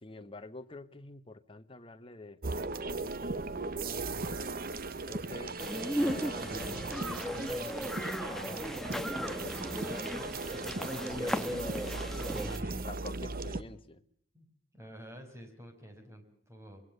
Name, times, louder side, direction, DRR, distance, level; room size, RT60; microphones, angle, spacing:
voice 1, 0.0-4.6 5.1-5.6 5.9-10.0 10.4-12.5 12.8-14.0, left 2 dB, 25° left, 9 dB, 1.3 m, -48 dB
sound 1, 2.4-13.6, right 3 dB, 45° right, 1.0 m, -38 dB
sound 2, 5.6-12.6, equal, ahead, 1.0 m, -36 dB
voice 2, 12.3-12.8 14.3-14.5 14.7-16.8, equal, 15° right, 4 dB, 5.5 m, -48 dB
25.0 x 23.0 x 6.7 m, 0.64 s
head